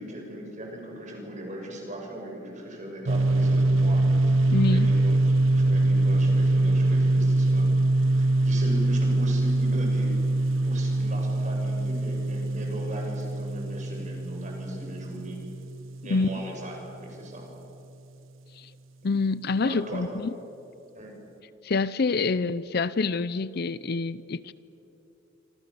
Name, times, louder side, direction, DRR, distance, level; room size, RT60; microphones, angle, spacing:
voice 1, 0.0-4.4 4.6-7.7 8.1-10.2 10.6-15.4 16.0-17.5 19.6-20.0 20.9-21.1, right 1 dB, 40° right, 6.6 m, -38 dB
sound 1, 3.1-16.6, right 2 dB, 85° right, 0.8 m, -23 dB
voice 2, 4.5-4.9 16.1-16.3 18.6-18.7 19.0-20.3 21.6-24.5, left 3 dB, 55° left, 0.6 m, -26 dB
27.0 x 26.0 x 7.0 m
head